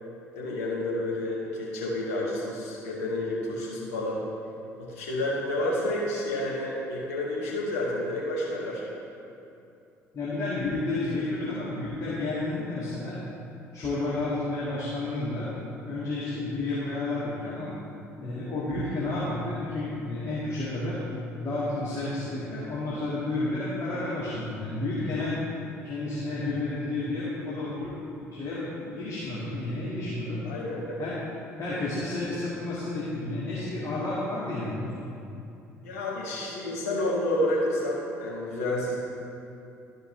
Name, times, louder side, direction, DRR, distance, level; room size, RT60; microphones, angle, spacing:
voice 1, 0.3-4.2 4.8-8.8 30.4-31.1 35.8-39.0, left 1 dB, 75° left, -4 dB, 1.6 m, -30 dB
voice 2, 10.1-13.2 13.7-15.5 15.8-17.7 18.2-21.0 21.4-25.4 25.8-30.4 31.0-31.2 31.6-34.9, left 2 dB, 40° left, -9 dB, 2.0 m, -31 dB
13.0 x 5.0 x 3.3 m, 2.7 s
figure-of-eight pair, 50°, 8 cm